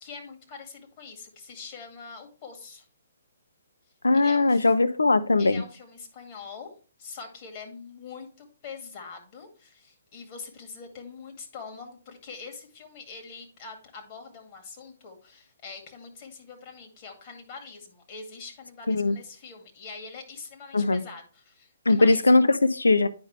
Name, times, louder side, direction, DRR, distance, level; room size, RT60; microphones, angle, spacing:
voice 1, 0.0-2.9 4.1-4.7 5.4-6.7 7.0-22.3, left 5 dB, 40° left, 2.1 m, -44 dB
voice 2, 4.0-5.6 18.9-19.2 20.7-21.0 21.9-23.1, left 3 dB, 85° left, 0.5 m, -20 dB
9.5 x 5.2 x 3.2 m
hypercardioid pair, 135°, 0 cm